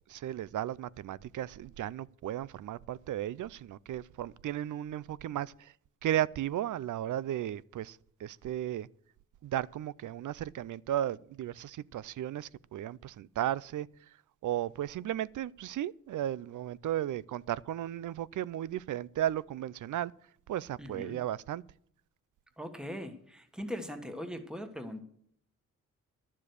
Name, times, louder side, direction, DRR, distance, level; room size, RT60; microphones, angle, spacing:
voice 1, 0.1-5.7 6.0-8.9 9.4-13.9 14.4-20.1 20.5-21.6, right 12 dB, 70° right, 0.5 m, -35 dB
voice 2, 20.8-21.2 22.6-25.0, equal, ahead, 1.4 m, -40 dB
12.0 x 7.4 x 6.5 m
cardioid pair, 105°, 32 cm